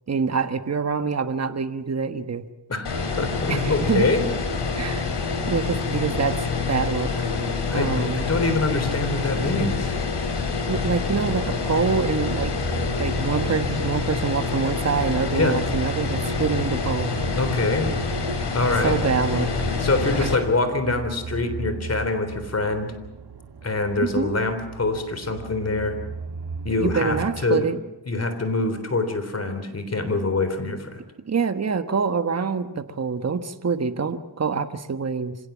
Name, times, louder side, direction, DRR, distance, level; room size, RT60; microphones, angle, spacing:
voice 1, 0.1-2.5 3.5-4.1 4.7-5.1 5.5-7.1 7.7-8.3 10.7-12.5 13.0-17.1 18.8-19.5 20.2-20.3 24.0-24.3 26.8-27.8 31.3-35.4, right 5 dB, 35° right, 9 dB, 1.4 m, -25 dB
voice 2, 2.7-4.2 7.7-9.9 15.3-15.6 17.3-17.9 18.5-19.0 19.8-22.9 23.6-26.0 26.6-27.6 28.1-31.0, left 3 dB, 35° left, 9 dB, 3.7 m, -25 dB
sound 1, 2.8-20.3, left 4 dB, 65° left, 4.7 m, -27 dB
sound 2, 10.7-27.4, right 5 dB, 55° right, 2.1 m, -36 dB
26.0 x 17.5 x 7.4 m, 1.0 s
cardioid pair, 80°, 44 cm